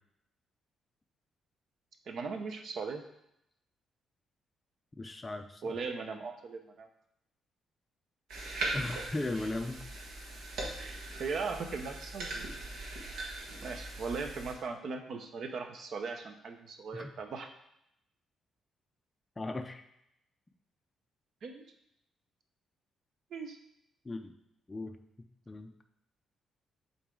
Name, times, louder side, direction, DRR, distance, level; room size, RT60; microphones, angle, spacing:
voice 1, 2.1-3.0 5.6-6.9 10.7-12.5 13.6-17.5 21.4-21.6 23.3-23.6, right 4 dB, 55° right, 6 dB, 0.7 m, -38 dB
voice 2, 5.0-5.7 8.7-9.8 16.9-17.1 19.4-19.8 24.0-24.3 24.7-25.7, left 2 dB, 15° left, 5 dB, 0.4 m, -38 dB
sound 1, 8.3-14.5, right 2 dB, 80° right, 1.5 m, -40 dB
7.8 x 4.0 x 3.8 m, 0.79 s
cardioid pair, 140°, 0 cm